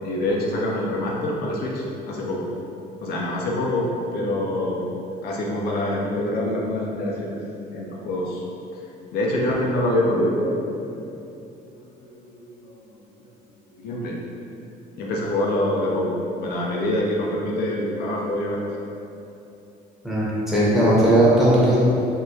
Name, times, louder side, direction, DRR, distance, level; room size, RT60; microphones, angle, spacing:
voice 1, 0.0-2.5 3.0-4.8 5.2-7.4 7.7-8.4 9.1-11.1 11.7-13.3 13.8-14.1 15.0-18.6, left 1 dB, 70° left, -3 dB, 0.5 m, -25 dB
voice 2, 20.0-21.9, right 1 dB, ahead, -8 dB, 0.8 m, -17 dB
3.5 x 2.2 x 2.7 m, 2.8 s
cardioid pair, 110°, 17 cm